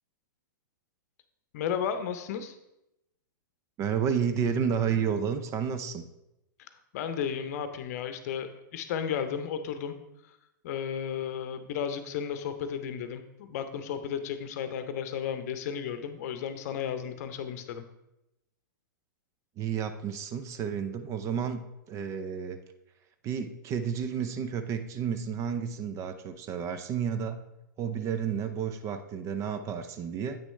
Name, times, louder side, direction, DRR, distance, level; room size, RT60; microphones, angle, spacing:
voice 1, 1.5-2.5 6.9-10.0 10.6-17.8, left 8 dB, 50° left, 10 dB, 0.7 m, -33 dB
voice 2, 3.8-6.0 19.6-21.6 21.9-22.6 23.2-27.4 27.8-30.4, right 7 dB, 30° right, 9 dB, 0.5 m, -31 dB
8.5 x 6.1 x 3.3 m, 0.88 s
figure-of-eight pair, 110°, 11 cm